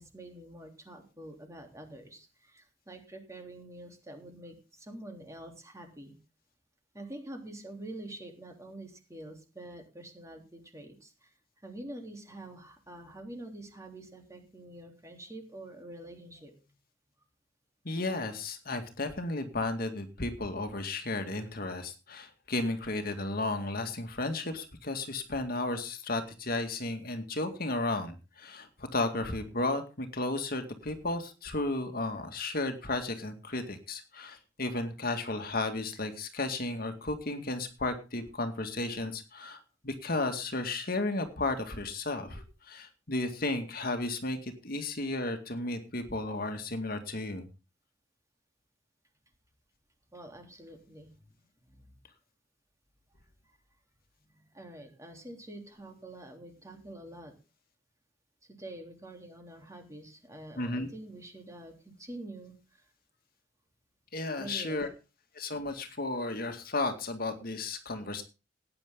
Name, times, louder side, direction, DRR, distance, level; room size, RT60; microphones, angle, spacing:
voice 1, 0.0-6.1 6.9-11.3 11.6-16.5 50.1-51.1 51.6-51.9 53.4-53.6 54.3-57.3 58.5-62.8 64.4-64.9, right 1 dB, 15° right, 4 dB, 3.4 m, -46 dB
voice 2, 17.8-47.5 60.6-60.9 64.1-64.9 65.3-68.2, left 2 dB, 50° left, 6 dB, 2.1 m, -34 dB
17.5 x 9.9 x 3.8 m, 0.31 s
head